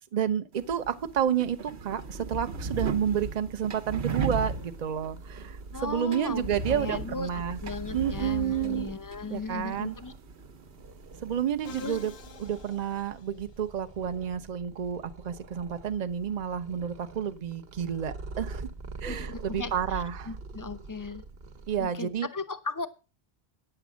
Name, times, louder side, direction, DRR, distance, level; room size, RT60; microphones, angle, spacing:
voice 1, 0.0-7.6 7.9-8.9 9.3-10.0 11.2-12.1 12.4-18.7 19.0-20.3 21.7-22.3, right 8 dB, 45° right, 11 dB, 0.8 m, -30 dB
sound 1, 0.5-11.6, right 4 dB, 85° right, 1.2 m, -37 dB
Purr, 2.6-21.9, right 3 dB, 65° right, 1.3 m, -45 dB
voice 2, 5.7-7.3 7.6-10.1 11.8-12.0 19.1-21.2 21.8-22.9, left 4 dB, 20° left, 13 dB, 0.6 m, -37 dB
Musical instrument, 11.6-13.7, left 8 dB, 80° left, 1.0 m, -48 dB
9.3 x 7.8 x 6.2 m, 0.34 s
omnidirectional pair, 1.1 m